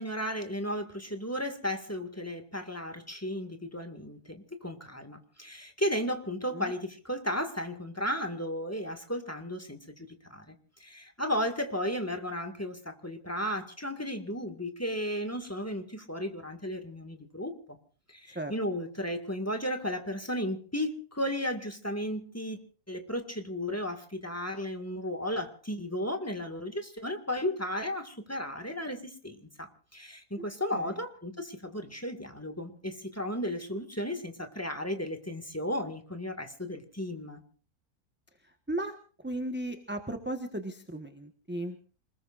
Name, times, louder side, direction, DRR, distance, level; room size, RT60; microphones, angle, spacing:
voice 1, 0.0-17.8 18.1-22.6 22.9-37.4, equal, 10° left, 7 dB, 1.9 m, -34 dB
voice 2, 39.2-41.8, right 1 dB, 10° right, 6 dB, 1.2 m, -35 dB
28.0 x 20.5 x 2.5 m, 0.41 s
omnidirectional pair, 1.6 m